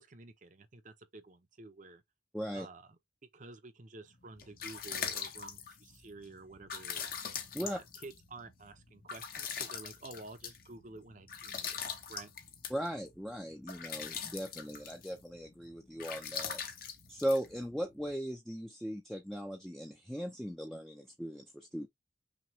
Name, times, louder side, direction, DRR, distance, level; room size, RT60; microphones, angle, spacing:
voice 1, 0.0-2.0 2.5-2.8 3.3-7.2 7.6-11.8 12.1-12.3, right 3 dB, 40° right, 0.7 m, -50 dB
voice 2, 2.3-2.7 7.5-7.8 12.7-16.6 17.1-21.9, equal, ahead, 0.5 m, -38 dB
sound 1, 4.2-18.1, left 7 dB, 50° left, 1.0 m, -43 dB
6.0 x 2.4 x 3.1 m
head